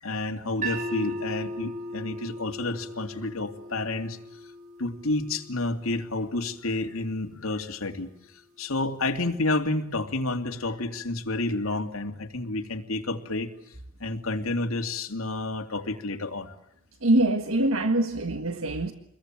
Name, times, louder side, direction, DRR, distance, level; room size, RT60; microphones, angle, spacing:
voice 1, 0.0-4.2 4.8-8.1 8.6-13.5 14.0-16.5, left 2 dB, 85° left, 2.7 m, -30 dB
sound 1, 0.6-6.8, equal, 35° right, 5.1 m, -38 dB
voice 2, 17.0-18.9, right 1 dB, 75° right, 1.7 m, -24 dB
29.0 x 22.0 x 9.0 m
head